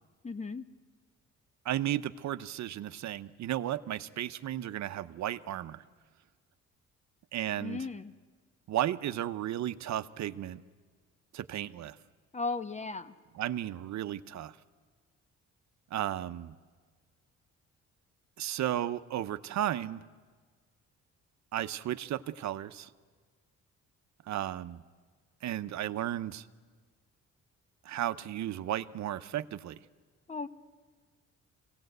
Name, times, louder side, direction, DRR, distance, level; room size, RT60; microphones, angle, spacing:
voice 1, 0.2-0.6 7.6-8.1 12.3-13.1 30.3-30.5, left 3 dB, 25° left, 12 dB, 0.9 m, -36 dB
voice 2, 1.6-5.8 7.3-7.9 8.7-10.6 11.3-12.0 13.3-14.6 15.9-16.5 18.4-20.0 21.5-22.9 24.3-24.8 25.4-26.4 27.8-29.8, right 12 dB, 65° right, 12 dB, 0.8 m, -34 dB
25.0 x 17.5 x 8.0 m, 1.5 s
cardioid pair, 90°, 30 cm